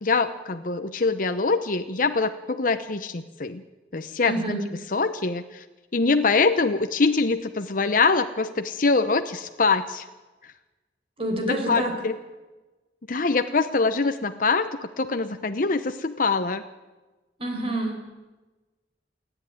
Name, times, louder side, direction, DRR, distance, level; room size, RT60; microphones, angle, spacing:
voice 1, 0.0-3.6 3.9-4.6 4.9-5.6 5.9-10.0 11.7-12.1 13.1-14.7 15.0-16.6, left 4 dB, 50° left, 8 dB, 0.9 m, -24 dB
voice 2, 4.2-4.6 11.2-11.9 17.4-18.1, right 1 dB, 35° right, 2 dB, 4.8 m, -27 dB
28.5 x 11.0 x 9.3 m, 1.2 s
head